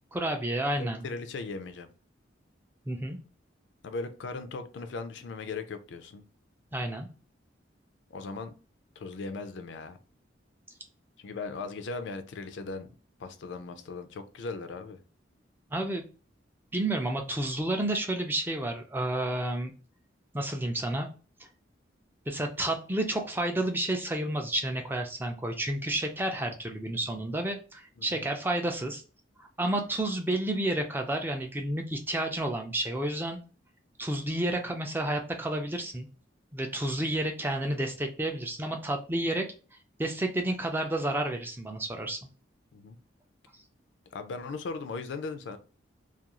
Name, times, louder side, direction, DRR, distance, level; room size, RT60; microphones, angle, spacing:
voice 1, 0.1-1.0 2.9-3.2 6.7-7.1 15.7-16.0 16.7-19.7 20.3-21.1 22.3-29.0 29.4-33.4 34.0-36.1 36.5-39.5 40.0-42.3, right 1 dB, 10° right, 4 dB, 0.3 m, -30 dB
voice 2, 0.8-1.9 3.8-6.2 8.1-8.5 9.0-10.0 11.2-12.9 13.2-15.0 28.0-28.2 42.7-43.0 44.1-45.6, left 3 dB, 70° left, 9 dB, 0.4 m, -38 dB
2.4 x 2.3 x 2.9 m, 0.36 s
head